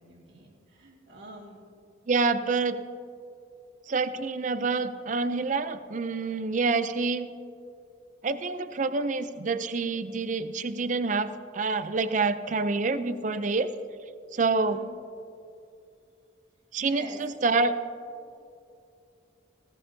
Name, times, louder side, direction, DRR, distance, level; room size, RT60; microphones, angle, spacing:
voice 1, 0.0-1.6 14.7-14.9 16.8-17.2, right 1 dB, 85° right, -7 dB, 2.0 m, -45 dB
voice 2, 2.1-2.8 3.9-7.3 8.2-13.7 14.3-14.8 16.7-17.7, right 4 dB, 40° right, 12 dB, 0.4 m, -27 dB
16.0 x 14.5 x 2.7 m, 2.5 s
head